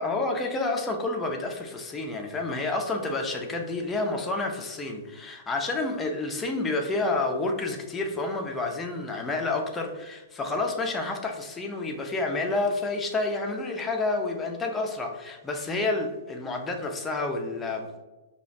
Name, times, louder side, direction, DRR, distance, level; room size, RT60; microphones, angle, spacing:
voice 1, 0.0-17.9, left 2 dB, 15° left, 2 dB, 0.5 m, -29 dB
4.9 x 2.4 x 2.7 m, 1.1 s
figure-of-eight pair, 110°, 0 cm